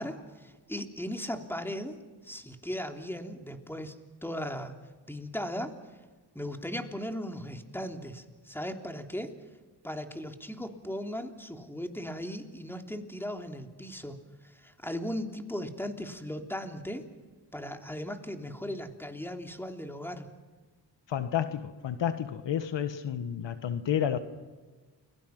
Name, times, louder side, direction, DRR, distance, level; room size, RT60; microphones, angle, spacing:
voice 1, 0.0-1.9 2.2-4.0 4.2-4.7 5.1-5.7 6.3-9.3 9.8-14.2 14.4-17.0 17.5-20.3, equal, 5° left, 4 dB, 3.3 m, -37 dB
voice 2, 21.1-24.2, left 9 dB, 75° left, 11 dB, 1.5 m, -30 dB
30.0 x 22.0 x 6.0 m, 1.3 s
cardioid pair, 60°, 44 cm